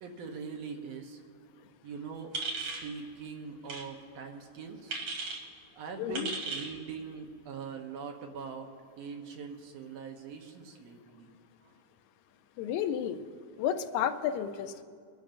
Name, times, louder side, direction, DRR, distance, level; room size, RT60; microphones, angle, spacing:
voice 1, 0.0-1.2 1.8-2.3 2.6-5.0 5.8-8.7 9.0-11.3 11.6-11.7, right 5 dB, 70° right, 3 dB, 1.9 m, -42 dB
sound 1, 2.3-2.9 3.6-3.8 4.9-5.4 6.1-6.7, right 3 dB, 55° right, 2.6 m, -36 dB
voice 2, 6.0-6.3 12.6-13.2 13.6-14.8, left 9 dB, 80° left, 9 dB, 1.9 m, -31 dB
23.0 x 11.5 x 2.6 m, 2.1 s
omnidirectional pair, 3.4 m